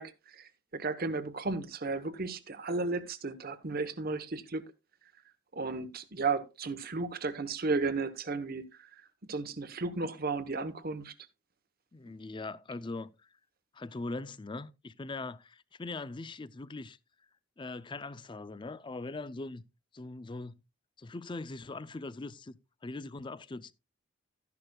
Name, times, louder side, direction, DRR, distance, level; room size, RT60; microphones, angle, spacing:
voice 1, 0.0-4.6 5.5-8.9 9.3-11.1, right 3 dB, 45° right, 1.0 m, -34 dB
voice 2, 11.9-13.1 13.7-17.0 17.6-19.6 19.9-20.5 21.0-23.7, left 3 dB, 25° left, 0.4 m, -41 dB
13.0 x 10.5 x 2.3 m
head